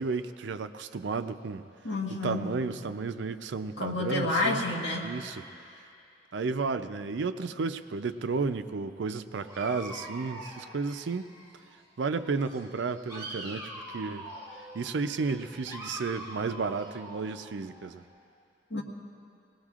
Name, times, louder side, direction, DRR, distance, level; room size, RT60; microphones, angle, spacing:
voice 1, 0.0-1.7 2.1-4.6 5.0-5.4 6.3-11.3 12.0-14.3 14.7-18.1, right 4 dB, 85° right, 10 dB, 0.5 m, -32 dB
voice 2, 1.8-2.5 3.8-5.2 18.7-18.8, left 2 dB, 80° left, -2 dB, 1.5 m, -29 dB
Dog, 9.4-11.8 12.1-18.0, right 1 dB, 20° right, 2.7 m, -44 dB
21.0 x 19.0 x 2.5 m, 2.6 s
head